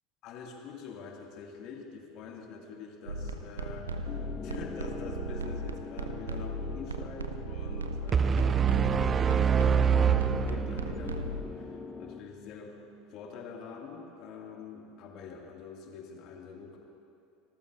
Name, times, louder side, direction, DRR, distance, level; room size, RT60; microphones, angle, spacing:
voice 1, 0.2-8.3 9.0-12.7 13.1-16.8, left 5 dB, 50° left, 0 dB, 2.1 m, -45 dB
sound 1, 3.1-11.4, right 2 dB, 80° right, 0.6 m, -37 dB
sound 2, 4.1-12.2, left 6 dB, 30° left, 0.6 m, -43 dB
sound 3, 8.1-11.2, right 7 dB, 30° right, 0.4 m, -25 dB
25.5 x 14.0 x 2.5 m, 2.6 s
figure-of-eight pair, 75°, 0 cm